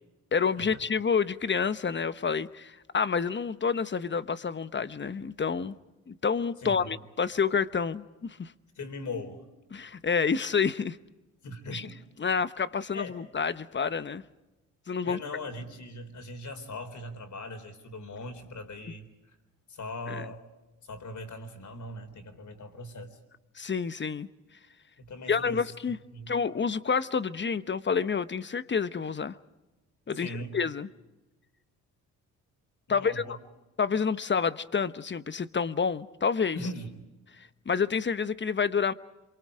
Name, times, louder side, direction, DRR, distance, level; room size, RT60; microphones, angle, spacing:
voice 1, 0.3-5.7 6.1-8.5 9.7-11.0 11.7-11.8 12.2-14.2 14.9-15.2 20.1-20.2 23.6-24.3 25.3-26.0 26.3-29.4 30.1-30.9 32.9-33.4 33.8-36.6 37.4-38.9, left 5 dB, 30° left, 1.1 m, -28 dB
voice 2, 6.6-7.0 8.8-9.4 11.4-12.0 12.9-13.1 15.0-19.1 19.7-20.4 20.8-23.2 25.0-26.3 30.1-30.6 32.9-33.4 36.5-37.0, left 2 dB, 50° left, 4.1 m, -40 dB
27.5 x 24.0 x 5.1 m
supercardioid pair, 55°, 36 cm